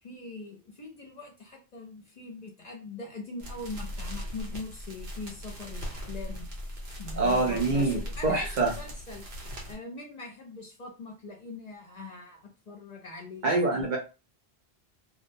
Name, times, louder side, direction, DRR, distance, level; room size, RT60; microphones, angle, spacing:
voice 1, 0.0-6.5 7.0-9.2 9.7-13.5, left 3 dB, 45° left, 0 dB, 0.7 m, -42 dB
sound 1, 3.4-9.8, equal, 80° right, 1.1 m, -39 dB
voice 2, 7.2-8.7 13.4-14.0, right 3 dB, 55° right, 0 dB, 0.7 m, -25 dB
2.3 x 2.1 x 2.6 m, 0.30 s
omnidirectional pair, 1.1 m